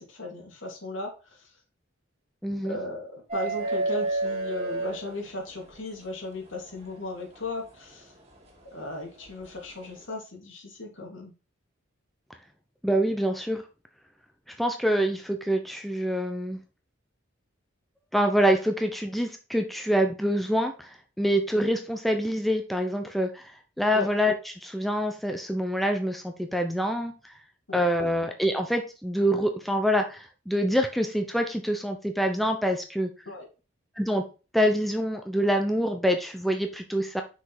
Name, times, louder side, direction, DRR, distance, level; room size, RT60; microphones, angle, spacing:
voice 1, 0.0-1.6 2.6-8.1 8.7-11.3 23.9-24.1 27.7-27.9 33.2-33.5, left 2 dB, 75° left, 0 dB, 2.9 m, -36 dB
voice 2, 2.4-2.8 12.8-13.6 14.5-16.6 18.1-20.9 21.2-23.5 23.8-27.1 27.7-33.1 34.0-34.3 34.5-37.2, equal, ahead, 4 dB, 0.7 m, -26 dB
sound 1, 3.3-5.7 7.4-7.5 9.3-9.4, right 2 dB, 35° right, 2.3 m, -29 dB
6.0 x 5.3 x 4.3 m, 0.32 s
head